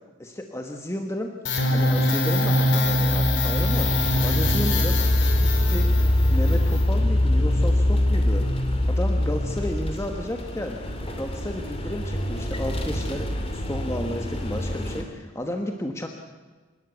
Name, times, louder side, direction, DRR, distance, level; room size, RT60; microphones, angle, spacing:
voice 1, 0.2-1.3 1.7-3.9 4.2-5.0 5.3-5.9 6.3-8.4 8.8-10.8 11.2-16.1, left 1 dB, 15° left, 3 dB, 1.4 m, -32 dB
sound 1, 1.5-9.9, left 1 dB, 70° left, 3.3 m, -21 dB
sound 2, 3.5-15.0, equal, 30° left, 2.6 m, -30 dB
28.5 x 13.0 x 8.3 m, 1.3 s
head